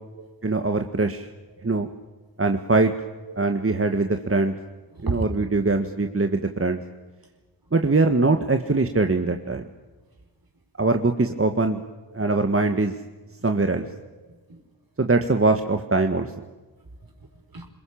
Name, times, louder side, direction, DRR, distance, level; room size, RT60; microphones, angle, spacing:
voice 1, 0.4-1.3 1.6-1.9 2.4-2.9 3.4-4.5 5.0-6.8 7.7-9.7 10.8-11.8 12.1-13.0 13.4-13.9 15.0-16.3, right 3 dB, 35° right, 6 dB, 1.7 m, -22 dB
voice 2, 4.9-5.3 12.1-12.3 13.3-13.5 14.2-14.6 16.8-17.7, right 3 dB, 60° right, 5 dB, 4.9 m, -35 dB
22.5 x 21.0 x 8.7 m, 1.2 s
cardioid pair, 40°, 41 cm